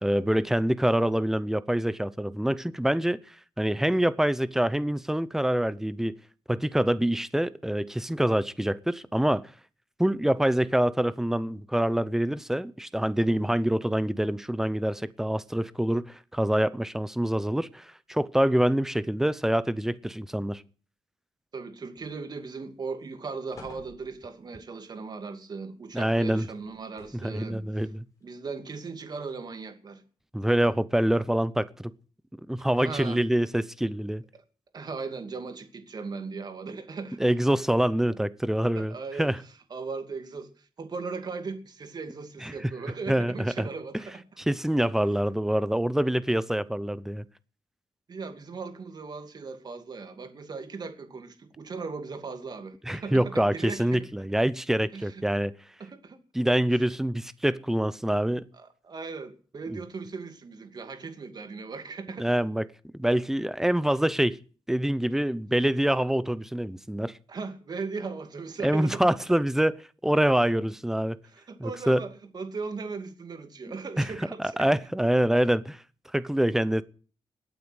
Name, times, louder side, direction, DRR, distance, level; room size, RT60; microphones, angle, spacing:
voice 1, 0.0-3.2 3.6-6.2 6.5-9.5 10.0-20.6 25.9-26.5 27.2-28.0 30.3-31.9 32.5-34.2 37.2-39.4 42.4-42.6 43.1-43.7 44.5-47.2 52.9-55.5 56.3-58.4 59.7-59.8 62.2-62.7 62.9-64.4 64.7-67.2 68.6-69.8 70.0-71.2 71.6-72.0 74.0-74.1 74.4-75.8 76.1-76.8, right 1 dB, 5° right, 0.8 m, -25 dB
voice 2, 21.5-27.6 28.2-30.0 32.8-33.2 34.3-34.4 34.7-37.2 38.7-39.3 39.7-44.2 48.1-54.0 54.9-55.2 55.8-56.2 58.5-62.3 67.3-69.0 71.2-74.7, right 4 dB, 45° right, 2.5 m, -38 dB
sound 1, 22.0-22.5 22.9-23.0 23.5-24.5 26.6-27.5 28.2-28.3, left 3 dB, 35° left, 6.6 m, -51 dB
20.5 x 8.9 x 8.0 m
wide cardioid pair, 135°, 10 cm